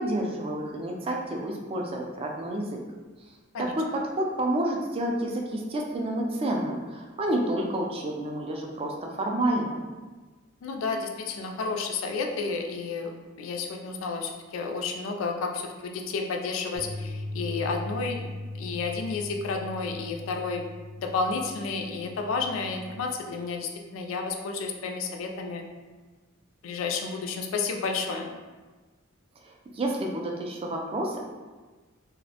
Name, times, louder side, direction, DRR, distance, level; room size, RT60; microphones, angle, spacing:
voice 1, 0.0-2.8 3.6-9.8 29.4-31.2, right 1 dB, 30° right, 1 dB, 0.3 m, -29 dB
voice 2, 10.6-20.7 21.0-25.6 26.6-28.3, left 4 dB, 85° left, 3 dB, 0.3 m, -31 dB
sound 1, 16.8-23.0, left 2 dB, 65° right, 0.6 m, -39 dB
2.4 x 2.0 x 2.7 m, 1.3 s
head